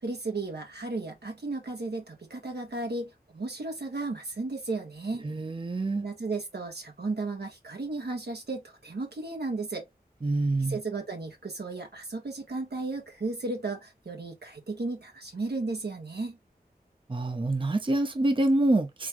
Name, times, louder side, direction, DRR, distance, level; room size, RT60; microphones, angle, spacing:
voice 1, 0.0-5.2 6.0-9.9 10.7-16.4, right 3 dB, 90° right, 1.5 m, -34 dB
voice 2, 5.2-6.0 10.2-10.8 17.1-19.1, right 2 dB, 30° right, 0.6 m, -26 dB
3.7 x 3.6 x 3.0 m
wide cardioid pair, 60°, 16 cm